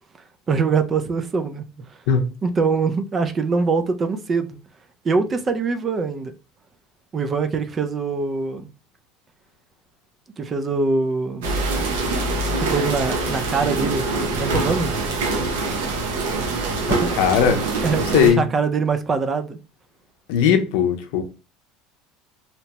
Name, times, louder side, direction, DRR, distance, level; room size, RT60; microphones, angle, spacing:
voice 1, 0.5-1.6 2.4-4.6 5.0-6.3 7.1-8.7 10.4-11.5 12.6-14.1 14.3-14.9 16.9-17.1 17.8-19.6, right 4 dB, 30° right, 0.4 m, -23 dB
sound 1, 11.4-18.3, right 3 dB, 90° right, 0.7 m, -24 dB
voice 2, 16.9-17.6 17.9-18.4 20.3-21.2, left 7 dB, 75° left, 0.6 m, -19 dB
2.8 x 2.1 x 2.9 m
supercardioid pair, 115°, 0 cm